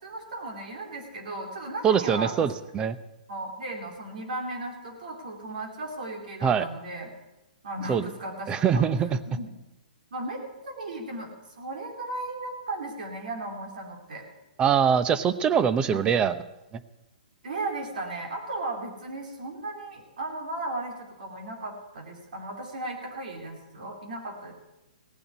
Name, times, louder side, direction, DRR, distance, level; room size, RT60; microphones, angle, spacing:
voice 1, 0.0-2.5 3.3-7.1 7.6-8.8 9.3-9.6 10.1-14.2 15.9-16.2 17.4-24.5, right 2 dB, 70° right, 1 dB, 3.4 m, -36 dB
voice 2, 1.8-3.0 6.4-6.7 7.9-8.0 8.5-9.1 14.6-16.3, right 7 dB, 20° right, 13 dB, 0.7 m, -23 dB
17.0 x 7.0 x 8.2 m, 0.98 s
hypercardioid pair, 140°, 5 cm